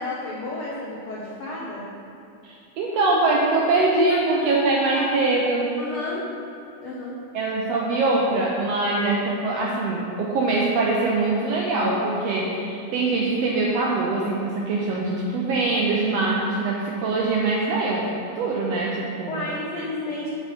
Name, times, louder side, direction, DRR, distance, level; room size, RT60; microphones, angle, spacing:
voice 1, 0.0-1.9 4.1-4.2 4.9-5.3 5.8-6.2 6.8-7.2 19.3-20.3, left 2 dB, 80° left, -5 dB, 1.2 m, -32 dB
voice 2, 2.4-5.7 7.3-18.1 18.3-19.5, right 3 dB, 80° right, -3 dB, 1.5 m, -23 dB
8.6 x 4.1 x 5.1 m, 2.7 s
omnidirectional pair, 3.6 m